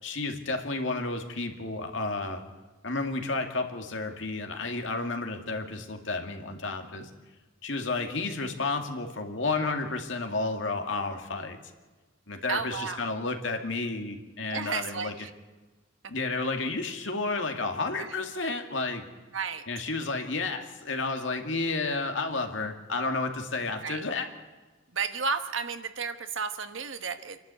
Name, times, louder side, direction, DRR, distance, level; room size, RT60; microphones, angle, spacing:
voice 1, 0.0-2.4 2.8-7.1 7.6-11.6 12.3-15.1 16.1-19.1 19.7-24.3, left 3 dB, 65° left, 4 dB, 2.3 m, -31 dB
voice 2, 12.5-13.1 14.5-15.3 18.0-18.1 19.3-19.7 23.8-24.0 24.9-27.4, right 5 dB, 70° right, 9 dB, 1.3 m, -32 dB
27.5 x 11.5 x 8.5 m, 1.3 s
head